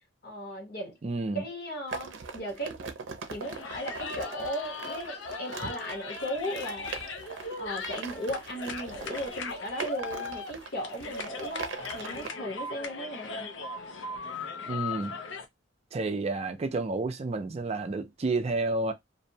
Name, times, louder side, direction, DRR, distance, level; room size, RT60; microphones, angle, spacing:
voice 1, 0.2-1.0 1.3-2.8 3.3-7.1 7.3-13.5, equal, 55° left, 1.1 m, -37 dB
voice 2, 1.0-1.4 14.7-15.1 15.9-18.9, right 3 dB, 35° right, 0.4 m, -30 dB
sound 1, 1.9-12.3, right 4 dB, 85° right, 0.5 m, -41 dB
sound 2, 3.4-15.4, left 4 dB, 85° left, 0.5 m, -38 dB
2.6 x 2.1 x 2.7 m
head